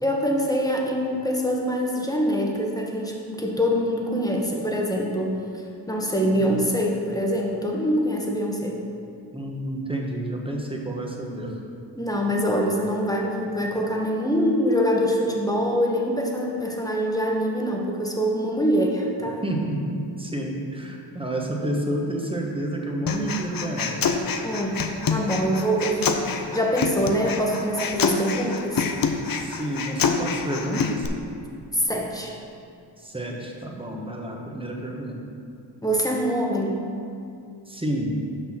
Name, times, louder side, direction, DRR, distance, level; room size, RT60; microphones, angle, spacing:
voice 1, 0.0-8.8 12.0-19.4 24.4-24.8 25.1-28.8 31.7-32.3 35.8-36.8, equal, 10° left, -1 dB, 1.4 m, -24 dB
voice 2, 9.3-11.5 19.4-24.1 29.4-31.1 33.0-35.2 37.7-38.1, right 1 dB, 10° right, -1 dB, 1.4 m, -30 dB
Human voice, 23.1-31.1, left 5 dB, 50° left, 0.7 m, -26 dB
6.4 x 5.6 x 5.9 m, 2.5 s
cardioid pair, 60°, 45 cm